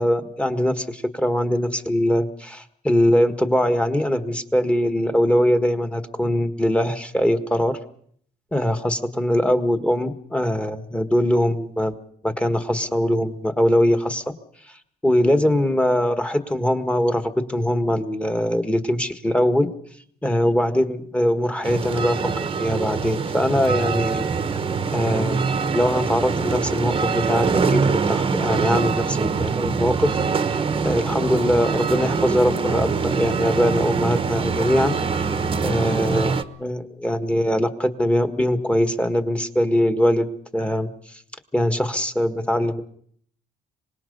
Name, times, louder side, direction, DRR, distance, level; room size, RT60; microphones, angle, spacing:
voice 1, 0.0-7.8 8.5-11.9 12.2-14.3 15.0-19.7 20.2-24.3 24.9-25.4 25.7-27.8 28.1-30.2 30.4-35.0 35.6-40.3 40.5-40.9 41.5-42.8, equal, 5° left, 8 dB, 1.7 m, -22 dB
sound 1, 21.6-36.4, right 5 dB, 30° right, 1.1 m, -24 dB
25.0 x 20.5 x 5.5 m, 0.62 s
cardioid pair, 110°, 17 cm